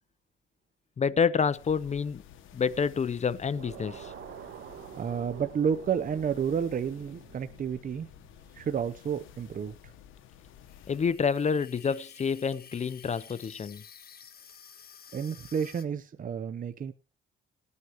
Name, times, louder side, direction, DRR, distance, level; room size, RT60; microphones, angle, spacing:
voice 1, 1.0-2.2 2.5-4.1 10.9-13.8, left 6 dB, 35° left, 0.7 m, -28 dB
sound 1, 1.5-11.3, left 10 dB, 85° left, 1.2 m, -53 dB
sound 2, 3.5-8.8, right 9 dB, 70° right, 1.7 m, -48 dB
voice 2, 5.0-8.1 8.5-9.7 15.1-16.9, right 7 dB, 45° right, 0.8 m, -30 dB
Water tap faucet / Sink (filling or washing), 10.7-15.8, left 7 dB, 50° left, 1.6 m, -51 dB
20.0 x 9.6 x 3.0 m
cardioid pair, 90°, 20 cm